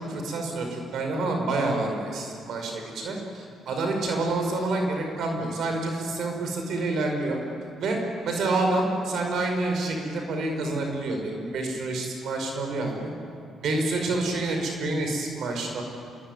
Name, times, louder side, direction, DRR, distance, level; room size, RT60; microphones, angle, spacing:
voice 1, 0.1-7.4 7.8-8.0 8.2-13.1 13.6-15.8, right 2 dB, 70° right, 3 dB, 5.7 m, -28 dB
26.0 x 23.0 x 9.7 m, 2.4 s
cardioid pair, 90°, 0 cm